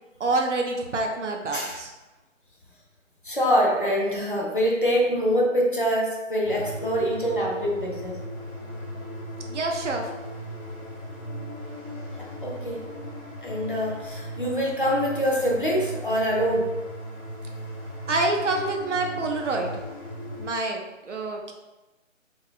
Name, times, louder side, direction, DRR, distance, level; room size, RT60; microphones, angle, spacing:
voice 1, 0.2-1.9 9.5-10.1 18.1-19.7 20.4-21.5, right 2 dB, 65° right, 2 dB, 0.5 m, -27 dB
voice 2, 3.2-8.2 12.2-12.8 13.4-16.7, equal, 40° left, -3 dB, 0.4 m, -25 dB
sound 1, 6.4-20.5, equal, 85° left, 1.0 m, -37 dB
2.8 x 2.3 x 2.3 m, 1.1 s
figure-of-eight pair, 150°, 40 cm